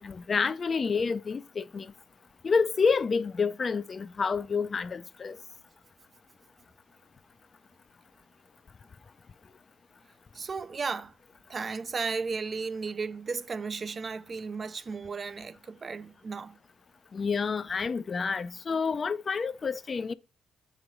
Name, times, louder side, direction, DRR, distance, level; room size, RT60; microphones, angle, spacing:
voice 1, 0.0-1.9 2.4-5.4 17.1-20.1, left 5 dB, 40° left, 0.4 m, -28 dB
voice 2, 10.3-11.2 11.5-16.6, right 4 dB, 40° right, 0.4 m, -34 dB
7.9 x 3.1 x 5.2 m
cardioid pair, 90°, 0 cm